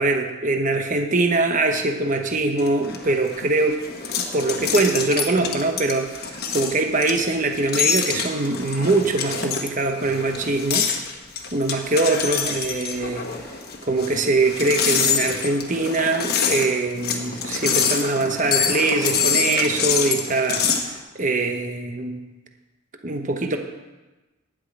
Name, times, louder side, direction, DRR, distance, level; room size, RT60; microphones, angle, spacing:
voice 1, 0.0-3.8 4.1-10.9 11.5-13.3 13.8-22.2 23.0-23.6, right 2 dB, 35° right, 5 dB, 1.0 m, -23 dB
sound 1, 2.6-20.9, left 6 dB, 45° left, 1.3 m, -26 dB
11.5 x 6.2 x 8.8 m, 1.1 s
head